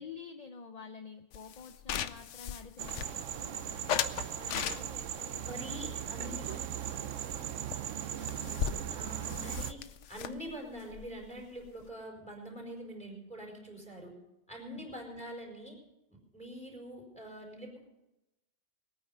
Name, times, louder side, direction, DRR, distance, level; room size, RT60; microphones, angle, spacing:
voice 1, 0.0-7.1 9.3-9.6 14.6-14.9, left 5 dB, 40° left, 7 dB, 0.7 m, -50 dB
sound 1, 1.3-3.4 3.9-5.2 5.8-7.0 7.3-7.4 7.7-7.8 8.0-11.9, left 9 dB, 75° left, 1.0 m, -38 dB
sound 2, 2.8-9.7, right 10 dB, 90° right, 1.1 m, -38 dB
voice 2, 5.4-6.5 8.9-9.8 10.1-14.2 14.5-15.8 16.1-17.8, equal, 5° left, 0 dB, 4.6 m, -44 dB
21.5 x 9.4 x 5.6 m, 0.94 s
omnidirectional pair, 1.2 m